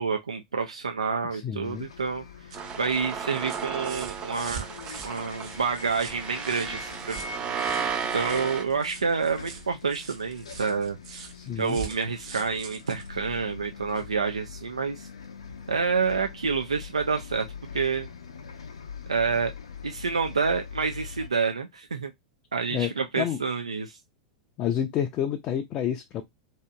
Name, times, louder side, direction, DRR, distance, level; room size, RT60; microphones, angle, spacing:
voice 1, 0.0-2.2 2.8-4.7 5.0-7.3 8.1-11.0 11.6-15.1 15.7-17.5 17.7-18.1 19.1-19.5 19.8-22.1 22.5-24.0, right 5 dB, 90° right, 0.3 m, -28 dB
voice 2, 1.3-1.9 11.3-11.8 22.7-22.9 23.2-23.4 24.6-26.2, left 9 dB, 40° left, 0.4 m, -29 dB
Bus, 1.6-21.3, left 6 dB, 80° left, 0.6 m, -43 dB
sound 1, 2.1-14.2 15.5-15.6, right 6 dB, 60° right, 0.8 m, -44 dB
sound 2, 2.5-8.6, right 7 dB, 35° right, 0.6 m, -34 dB
2.7 x 2.7 x 2.2 m
hypercardioid pair, 95°, 3 cm